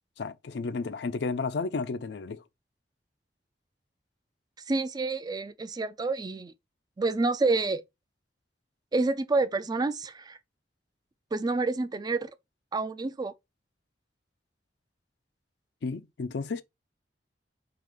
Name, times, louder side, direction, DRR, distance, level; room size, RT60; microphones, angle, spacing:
voice 1, 0.2-2.4 15.8-16.6, left 4 dB, 65° left, 0.4 m, -32 dB
voice 2, 4.7-6.5 7.0-7.8 8.9-10.4 11.3-12.3 12.7-13.3, right 3 dB, 25° right, 0.4 m, -28 dB
4.8 x 2.5 x 3.6 m
head